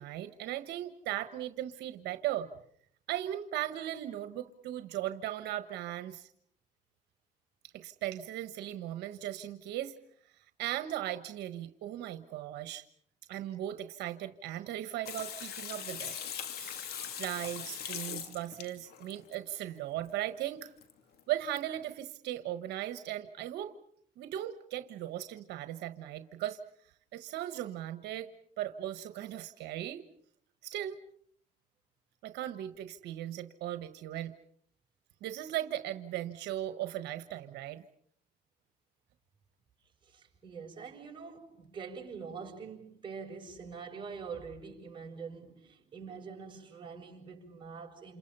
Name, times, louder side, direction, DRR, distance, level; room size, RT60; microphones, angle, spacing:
voice 1, 0.0-2.5 3.1-6.3 7.7-9.9 10.3-12.9 13.3-16.1 16.5-20.7 21.3-23.7 24.2-26.6 27.1-28.3 28.6-30.1 30.6-31.0 32.2-34.3 35.2-37.8, right 13 dB, 80° right, 1.3 m, -37 dB
Water tap faucet / Sink (filling or washing), 15.1-19.4 20.8-20.9 21.2-21.3 21.6-21.7, left 8 dB, 70° left, 3.0 m, -41 dB
voice 2, 40.0-48.2, right 5 dB, 30° right, 6.4 m, -45 dB
29.0 x 28.5 x 5.5 m
cardioid pair, 110°, 17 cm